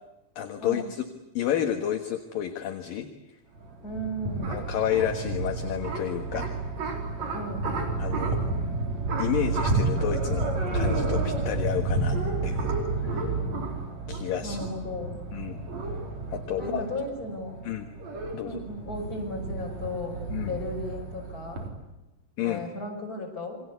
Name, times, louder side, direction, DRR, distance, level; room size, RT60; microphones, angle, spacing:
voice 1, 0.4-1.1 1.3-3.1 4.5-6.5 8.0-8.5 9.2-12.7 13.0-13.3 14.1-14.6 15.3-15.6 16.3-16.8 17.6-17.9 18.3-18.6 20.3-20.5 22.4-22.6, left 10 dB, 60° left, 6 dB, 2.8 m, -30 dB
sound 1, 3.6-21.7, right 3 dB, 40° right, 4.9 m, -30 dB
voice 2, 3.8-4.6 7.3-7.7 14.4-15.1 16.6-17.6 18.4-21.7 22.4-23.6, left 1 dB, 20° left, 1 dB, 5.9 m, -35 dB
28.5 x 24.0 x 8.2 m, 0.99 s
omnidirectional pair, 5.0 m